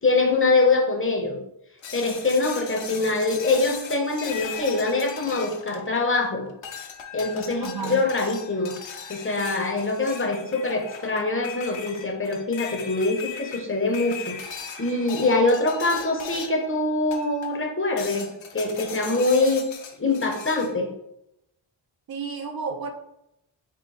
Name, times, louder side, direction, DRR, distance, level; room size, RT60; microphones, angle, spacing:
voice 1, 0.0-1.4 1.9-6.5 7.1-8.7 9.1-14.4 14.8-18.3 18.5-19.6 20.0-20.9, left 3 dB, 25° left, 1 dB, 0.7 m, -24 dB
sound 1, 1.8-6.2 6.6-16.7 17.1-17.6 18.0-20.7, left 6 dB, 70° left, 0.7 m, -38 dB
voice 2, 7.6-8.0 22.1-22.9, right 5 dB, 50° right, 4 dB, 0.5 m, -31 dB
3.6 x 2.6 x 4.0 m, 0.81 s
wide cardioid pair, 130°, 48 cm